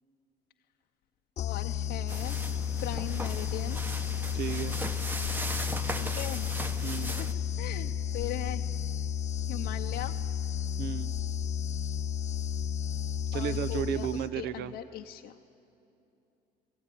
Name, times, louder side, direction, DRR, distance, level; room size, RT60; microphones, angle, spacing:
voice 1, 1.4-2.4 2.8-3.8 6.0-6.6 7.2-7.3 7.6-8.7 9.5-10.2 13.3-15.4, left 13 dB, 75° left, 2 dB, 0.7 m, -39 dB
sound 1, 1.4-14.5, left 8 dB, 40° left, 0.7 m, -32 dB
sound 2, 2.1-7.3, right 1 dB, 10° right, 1.0 m, -38 dB
voice 2, 4.3-4.8 6.8-7.1 10.8-11.1 13.3-14.7, right 10 dB, 80° right, 14 dB, 0.8 m, -33 dB
28.5 x 16.5 x 9.9 m, 2.9 s
cardioid pair, 110°, 17 cm